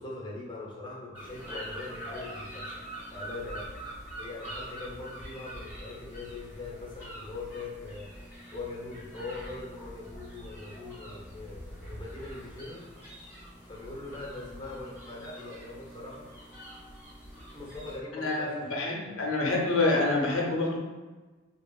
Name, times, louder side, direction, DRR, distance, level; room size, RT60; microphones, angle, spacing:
voice 1, 0.0-2.7 3.1-3.7 4.2-8.1 8.5-12.9 13.7-16.3 17.5-19.4, left 3 dB, 25° left, -4 dB, 0.6 m, -41 dB
sound 1, 1.1-18.0, right 1 dB, 10° right, 1.2 m, -44 dB
voice 2, 18.1-20.8, left 2 dB, 75° left, -2 dB, 0.6 m, -27 dB
2.8 x 2.4 x 2.3 m, 1.3 s
head